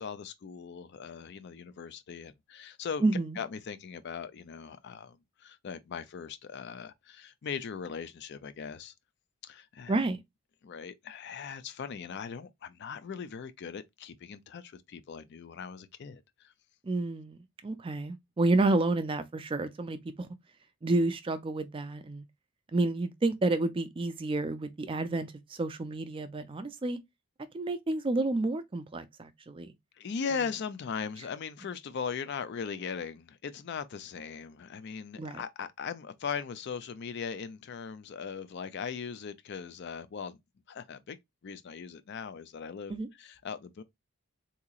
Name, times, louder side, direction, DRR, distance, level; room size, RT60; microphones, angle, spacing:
voice 1, 0.0-3.0 3.4-8.9 9.4-10.0 10.6-16.5 30.0-40.4 40.7-43.8, left 6 dB, 50° left, 0.4 m, -39 dB
voice 2, 3.0-3.4 9.9-10.2 16.8-20.3 20.8-22.2 22.7-27.0 27.5-29.7 35.2-35.4 42.9-43.1, right 2 dB, 25° right, 0.3 m, -30 dB
3.7 x 2.8 x 2.4 m
head